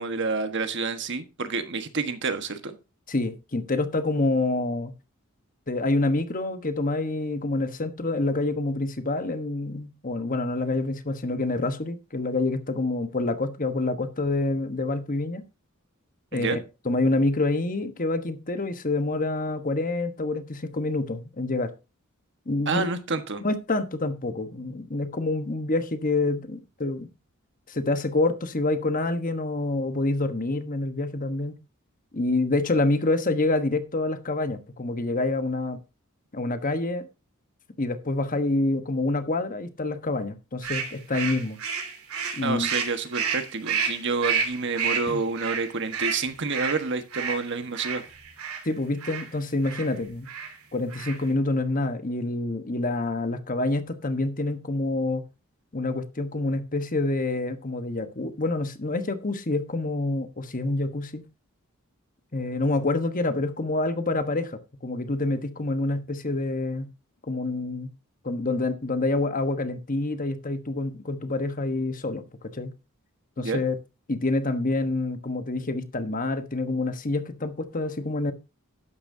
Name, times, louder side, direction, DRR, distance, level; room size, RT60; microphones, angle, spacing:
voice 1, 0.0-2.8 16.3-16.6 22.7-23.4 42.4-48.0 73.4-73.6, right 4 dB, 55° right, 1.4 m, -29 dB
voice 2, 3.1-4.9 5.7-15.4 16.3-21.7 22.5-22.9 23.4-27.1 27.7-31.5 32.1-35.8 36.3-37.1 37.8-41.6 42.4-42.7 45.1-45.2 48.6-50.3 50.7-55.2 55.7-61.2 62.3-66.9 67.3-67.9 68.2-72.2 72.5-72.7 73.4-73.8 74.1-78.3, left 2 dB, 40° left, 1.2 m, -27 dB
sound 1, 40.6-48.6 49.0-49.3 49.6-49.9 50.3-50.5 50.8-51.3, right 6 dB, 80° right, 2.8 m, -30 dB
12.0 x 10.0 x 2.7 m
head